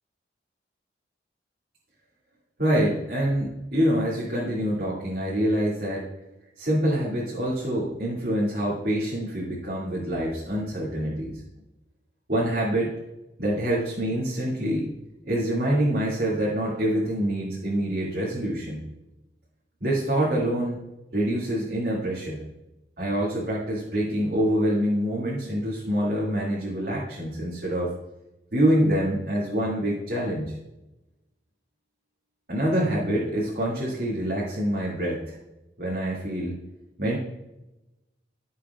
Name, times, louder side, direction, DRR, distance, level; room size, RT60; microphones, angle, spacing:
voice 1, 2.6-6.1 6.6-11.4 12.3-12.9 13.4-14.9 15.3-18.8 19.8-20.8 21.1-22.4 23.0-27.9 28.5-30.5 32.5-35.4 35.8-36.6 37.0-37.2, right 1 dB, 60° right, -7 dB, 2.3 m, -26 dB
14.5 x 7.1 x 2.4 m, 0.96 s
head